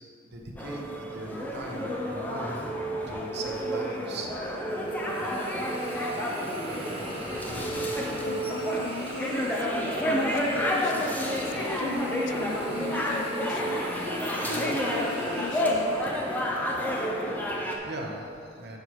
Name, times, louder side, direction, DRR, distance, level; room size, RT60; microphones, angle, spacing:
voice 1, 0.3-2.5 3.1-4.4 7.2-7.7 14.2-14.8 17.3-18.8, right 2 dB, 60° right, 1 dB, 1.0 m, -40 dB
sound 1, 0.6-17.8, equal, 10° left, 0.7 m, -30 dB
Hiss, 4.5-16.7, equal, 30° right, 1.3 m, -41 dB
voice 2, 7.5-16.1, left 4 dB, 65° left, 9 dB, 0.4 m, -39 dB
10.0 x 6.6 x 3.1 m, 2.5 s
head